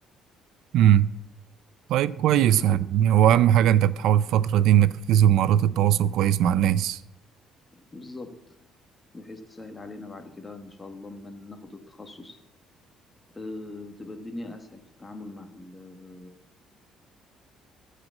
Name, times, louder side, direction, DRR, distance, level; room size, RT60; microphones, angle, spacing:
voice 1, 0.7-1.1 1.9-7.0, right 11 dB, 70° right, 0.4 m, -20 dB
voice 2, 7.7-8.6 9.1-12.4 13.3-16.3, left 2 dB, 15° left, 1.5 m, -41 dB
13.5 x 5.0 x 8.5 m
cardioid pair, 145°, 0 cm